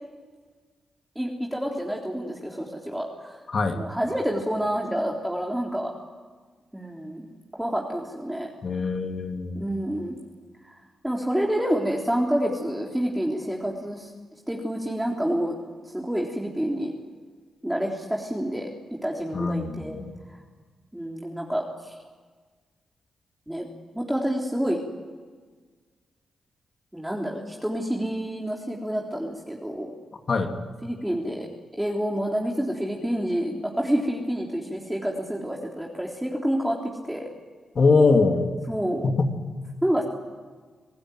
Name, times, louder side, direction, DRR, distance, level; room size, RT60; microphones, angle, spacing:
voice 1, 1.2-3.4 3.7-5.9 6.7-7.3 7.5-8.5 9.5-10.2 10.6-10.7 11.0-14.1 14.5-15.6 15.8-16.9 17.6-18.7 19.0-20.0 20.9-22.0 23.5-23.7 23.9-24.8 26.9-29.9 30.8-31.5 31.8-36.8 37.0-37.3 38.7-39.1 39.8-40.0, equal, 5° right, -1 dB, 3.8 m, -28 dB
voice 2, 3.5-3.8 8.6-9.7 19.3-20.2 30.3-30.5 37.7-38.5 39.0-39.3, left 3 dB, 55° left, 4 dB, 2.8 m, -22 dB
27.0 x 15.5 x 9.5 m, 1.5 s
supercardioid pair, 45°, 0 cm